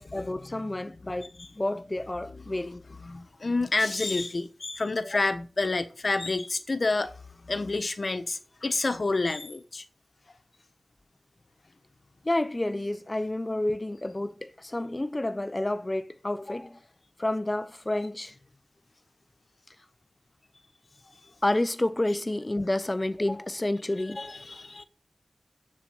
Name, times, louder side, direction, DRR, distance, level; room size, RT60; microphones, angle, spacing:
voice 1, 0.0-2.8 5.1-5.2 12.2-16.8 17.2-18.3 21.4-24.4, left 1 dB, 30° left, 0.6 m, -30 dB
voice 2, 3.0-7.1 7.4-9.8 24.2-24.8, left 3 dB, 50° left, 1.2 m, -29 dB
7.5 x 7.3 x 7.4 m
cardioid pair, 50°, 0 cm